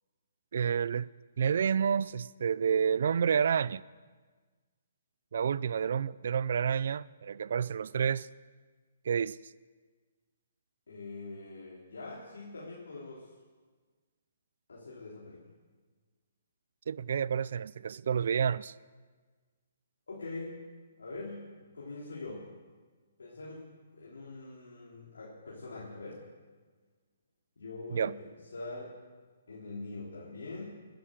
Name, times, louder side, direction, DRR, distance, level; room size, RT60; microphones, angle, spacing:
voice 1, 0.5-1.1 1.4-3.8 5.3-8.3 9.0-9.4 16.9-18.7 27.9-28.1, right 7 dB, 65° right, 0.5 m, -29 dB
voice 2, 10.9-13.3 14.7-15.4 20.1-20.6 21.0-22.5 23.2-23.7 23.9-26.2 27.6-28.3 28.5-28.9 29.5-30.7, left 3 dB, 85° left, 3.5 m, -43 dB
20.0 x 10.5 x 6.7 m
hypercardioid pair, 150°, 0 cm